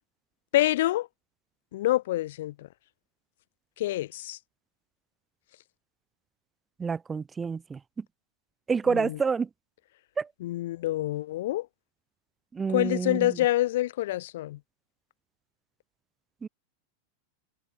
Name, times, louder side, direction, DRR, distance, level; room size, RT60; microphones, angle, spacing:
voice 1, 0.5-1.1 1.7-2.7 3.8-4.4 8.9-9.2 10.4-11.7 12.7-14.6, left 15 dB, 55° left, 5.3 m, -27 dB
voice 2, 6.8-8.0 8.7-9.5 10.2-10.3 12.5-13.4 16.4-16.5, right 5 dB, 15° right, 4.1 m, -28 dB
figure-of-eight pair, 90°, 0 cm